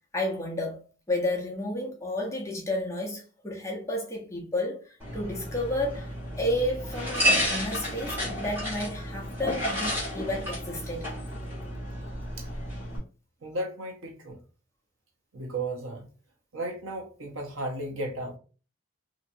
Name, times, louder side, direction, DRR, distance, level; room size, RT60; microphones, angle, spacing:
voice 1, 0.1-11.1, left 1 dB, 15° left, 0.7 m, -31 dB
sound 1, 5.0-13.0, equal, 10° right, 1.2 m, -31 dB
voice 2, 13.4-14.4 15.3-16.1 16.5-18.4, right 1 dB, 75° right, 0.9 m, -34 dB
2.9 x 2.5 x 2.6 m
head